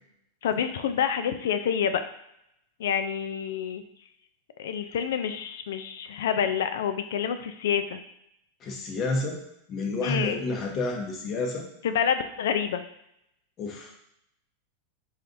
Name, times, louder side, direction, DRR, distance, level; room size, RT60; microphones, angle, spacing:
voice 1, 0.4-2.0 2.8-3.8 4.6-8.0 10.0-10.4 11.8-12.9, left 8 dB, 70° left, 9 dB, 0.3 m, -27 dB
voice 2, 8.6-9.4 9.7-11.7 13.6-13.9, left 2 dB, 35° left, 1 dB, 0.9 m, -29 dB
3.9 x 3.1 x 2.6 m, 0.78 s
hypercardioid pair, 100°, 0 cm